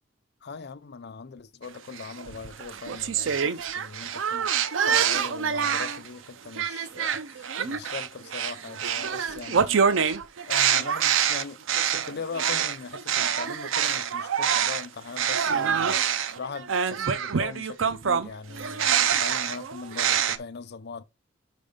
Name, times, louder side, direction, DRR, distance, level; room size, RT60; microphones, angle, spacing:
voice 1, 0.4-4.5 4.8-10.1 10.5-11.6 11.9-16.0 16.4-21.0, left 5 dB, 60° left, 0.6 m, -40 dB
sound 1, 2.0-6.1 6.5-14.9 15.2-20.4, right 7 dB, 80° right, 0.6 m, -26 dB
5.2 x 5.2 x 5.1 m
head